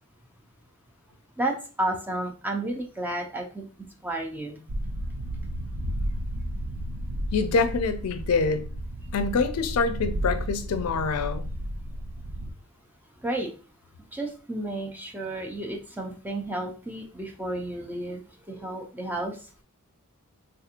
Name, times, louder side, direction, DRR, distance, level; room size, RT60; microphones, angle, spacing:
voice 1, 1.4-3.7 4.0-4.6 13.2-13.5 14.1-18.2 18.5-19.4, right 1 dB, 10° right, 0.4 m, -32 dB
sound 1, 4.7-12.5, right 1 dB, 80° right, 0.5 m, -33 dB
voice 2, 7.3-8.6 9.1-11.4, left 4 dB, 70° left, 0.4 m, -25 dB
3.5 x 2.9 x 2.4 m
head